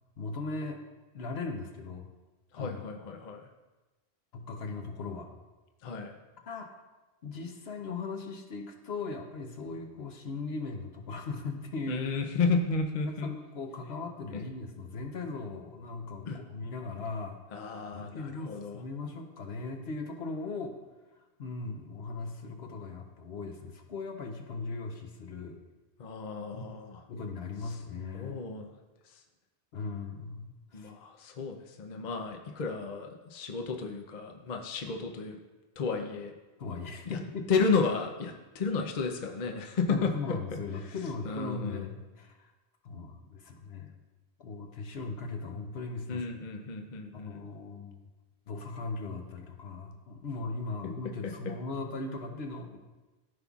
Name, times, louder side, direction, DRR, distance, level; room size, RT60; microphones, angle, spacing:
voice 1, 0.2-0.8 1.1-2.1 2.6-2.8 4.3-5.3 6.5-6.7 7.2-12.0 13.1-17.4 17.9-20.7 21.4-25.6 26.5-26.7 27.1-28.4 29.7-30.9 36.6-37.5 39.9-42.5 42.8-44.0 44.4-46.2 47.1-48.0 48.5-52.8, left 3 dB, 70° left, 3 dB, 1.1 m, -38 dB
voice 2, 2.5-3.5 5.8-6.2 11.9-13.3 16.3-16.4 17.5-18.8 26.0-27.0 28.1-28.7 29.1-29.2 30.7-35.4 35.8-36.3 37.1-37.2 37.5-40.1 41.2-41.8 46.1-47.4, left 4 dB, 50° left, 3 dB, 0.7 m, -32 dB
14.0 x 5.4 x 2.4 m, 1.2 s
omnidirectional pair, 1.1 m